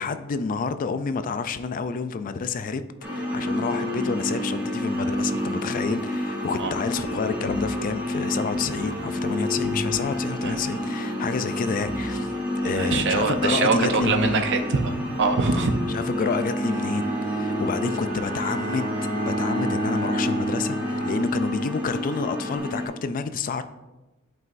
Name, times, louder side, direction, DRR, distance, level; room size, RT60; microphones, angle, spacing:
voice 1, 0.0-2.8 3.1-12.3 12.6-14.4 15.9-18.9 19.2-23.6, left 5 dB, 40° left, 11 dB, 0.3 m, -29 dB
sound 1, 3.0-22.9, left 1 dB, 10° right, 1.5 m, -29 dB
sound 2, 7.5-8.0 8.5-9.0 9.6-10.2 11.8-12.4 12.9-13.4 14.0-14.5, left 1 dB, 80° left, 0.7 m, -36 dB
voice 2, 12.6-14.9 15.2-15.7, right 4 dB, 55° right, 6 dB, 0.6 m, -23 dB
Bowed string instrument, 16.1-21.9, right 1 dB, 30° right, 1.4 m, -30 dB
11.0 x 5.4 x 2.5 m, 1.1 s
head